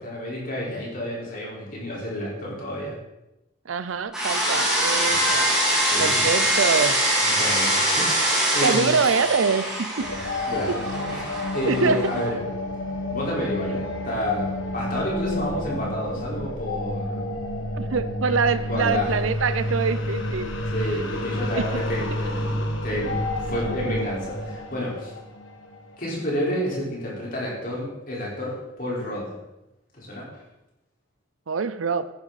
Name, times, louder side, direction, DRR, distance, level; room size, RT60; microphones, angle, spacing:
voice 1, 0.0-2.9 5.8-6.3 7.2-9.0 10.0-12.4 13.1-17.4 18.7-19.1 20.7-25.2 26.0-29.3 29.9-30.3, left 1 dB, 45° left, -5 dB, 4.7 m, -30 dB
voice 2, 3.7-5.6 6.0-7.0 8.6-10.1 10.7-10.8 11.7-12.1 17.7-20.6 21.5-21.8 31.5-32.1, right 5 dB, 90° right, 13 dB, 0.6 m, -24 dB
sound 1, 4.1-12.3, right 1 dB, 5° right, 4.0 m, -23 dB
sound 2, 10.0-26.2, left 1 dB, 80° left, 1.8 m, -30 dB
14.0 x 10.5 x 4.2 m, 0.93 s
head